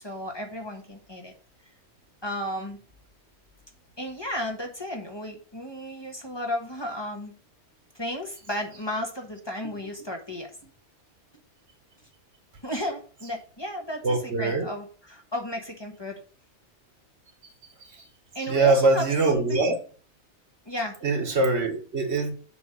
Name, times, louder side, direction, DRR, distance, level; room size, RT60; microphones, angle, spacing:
voice 1, 0.0-1.3 2.2-2.8 4.0-7.3 7.9-10.7 12.6-16.2 18.3-19.7 20.6-21.0, left 1 dB, 25° left, 1.3 m, -34 dB
voice 2, 14.0-14.7 17.9-18.0 18.5-19.8 21.0-22.3, right 3 dB, 70° right, 1.6 m, -23 dB
7.8 x 3.5 x 6.2 m
omnidirectional pair, 1.2 m